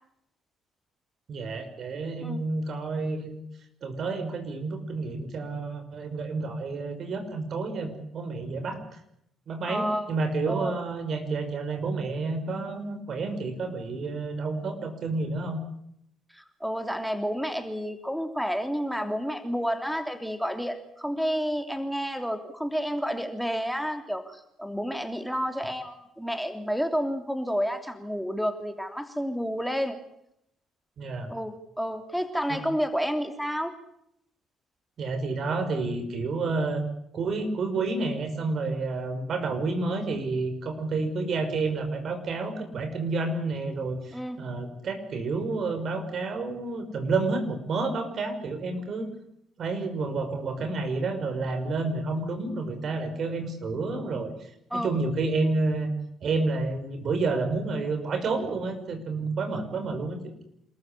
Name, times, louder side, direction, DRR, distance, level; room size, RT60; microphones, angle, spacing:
voice 1, 1.3-3.4 3.8-8.8 9.5-15.6 31.0-31.3 32.5-32.6 35.0-36.8 37.1-49.1 49.6-55.9 56.2-60.3, right 3 dB, 55° right, 7 dB, 5.7 m, -30 dB
voice 2, 9.7-10.1 10.5-10.7 16.3-30.0 31.3-33.7 44.1-44.4 54.7-54.9, equal, ahead, 7 dB, 3.2 m, -30 dB
27.5 x 14.5 x 9.9 m, 0.75 s
hypercardioid pair, 55°, 0 cm